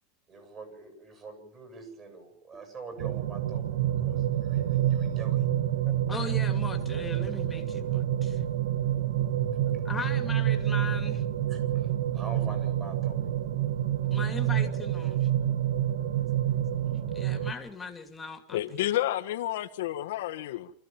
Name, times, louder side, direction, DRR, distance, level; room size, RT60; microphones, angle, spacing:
voice 1, 0.3-5.5 11.5-13.3, right 4 dB, 25° right, 7.8 m, -45 dB
sound 1, 3.0-17.5, right 11 dB, 80° right, 1.6 m, -28 dB
voice 2, 5.9-8.4 9.7-11.2 14.0-15.3 16.1-16.5 16.9-18.9, left 4 dB, 10° left, 2.9 m, -39 dB
voice 3, 18.5-20.7, left 13 dB, 75° left, 1.7 m, -30 dB
28.0 x 14.5 x 7.2 m
supercardioid pair, 150°, 0 cm